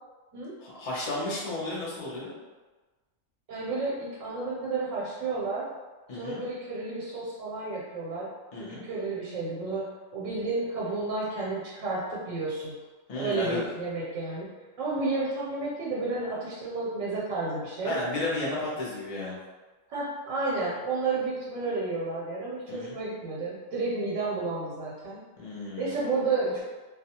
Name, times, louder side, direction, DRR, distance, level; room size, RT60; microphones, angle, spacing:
voice 1, 0.6-2.3 6.1-6.4 8.5-8.8 13.1-13.6 17.8-19.4 22.7-22.9 25.4-25.9, left 2 dB, 45° left, -6 dB, 0.5 m, -33 dB
voice 2, 3.5-5.7 6.1-8.3 8.6-9.8 10.1-12.7 13.2-14.5 14.8-18.0 19.9-25.2 25.8-26.6, right 3 dB, 85° right, -6 dB, 1.0 m, -31 dB
2.3 x 2.2 x 2.8 m, 1.3 s
omnidirectional pair, 1.3 m